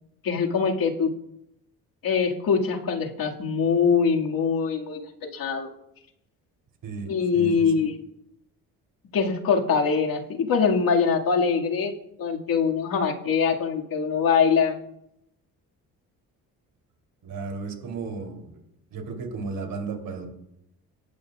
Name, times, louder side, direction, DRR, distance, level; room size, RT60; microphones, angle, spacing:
voice 1, 0.2-1.1 2.0-5.7 7.1-7.9 9.1-11.9 12.2-14.8, left 6 dB, 60° left, 0 dB, 2.1 m, -23 dB
voice 2, 6.8-7.8 17.2-18.5 18.9-20.3, right 4 dB, 60° right, 3 dB, 3.2 m, -34 dB
19.0 x 10.5 x 2.4 m, 0.80 s
supercardioid pair, 65°, 39 cm